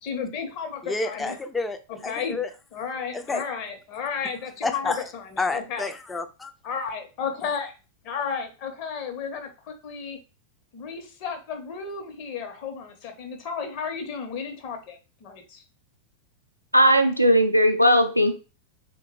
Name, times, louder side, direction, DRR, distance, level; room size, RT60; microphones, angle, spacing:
voice 1, 0.0-1.4 1.9-2.4 2.7-5.9 6.6-7.7 8.0-10.2 10.7-15.6, left 6 dB, 45° left, 5 dB, 0.7 m, -33 dB
voice 2, 0.8-1.8 2.0-2.5 3.1-3.4 4.6-5.0 5.4-6.5, left 3 dB, 10° left, 9 dB, 0.4 m, -29 dB
voice 3, 16.7-18.4, equal, 90° right, 6 dB, 0.4 m, -18 dB
3.5 x 2.1 x 3.0 m, 0.31 s
figure-of-eight pair, 90°, 0 cm